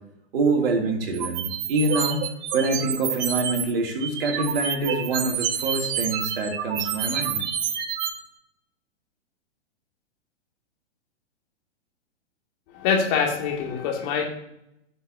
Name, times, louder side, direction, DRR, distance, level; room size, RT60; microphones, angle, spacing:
voice 1, 0.3-2.2 2.5-7.4, right 2 dB, 55° right, 1 dB, 3.0 m, -25 dB
sound 1, 1.1-3.6 4.0-8.1, right 9 dB, 40° right, 1.3 m, -28 dB
voice 2, 12.7-14.3, left 6 dB, 35° left, 0 dB, 2.5 m, -24 dB
16.0 x 7.2 x 2.8 m, 0.81 s
figure-of-eight pair, 115°, 34 cm